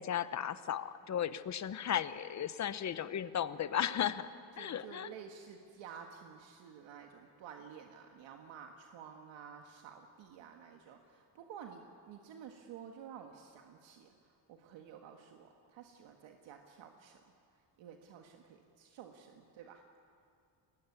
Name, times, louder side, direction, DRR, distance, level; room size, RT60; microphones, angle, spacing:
voice 1, 0.0-4.3 4.6-5.1, left 9 dB, 40° left, 13 dB, 0.9 m, -35 dB
voice 2, 4.5-17.2 17.8-19.8, right 7 dB, 85° right, 3 dB, 1.7 m, -52 dB
23.5 x 19.5 x 9.5 m, 2.4 s
cardioid pair, 140°, 44 cm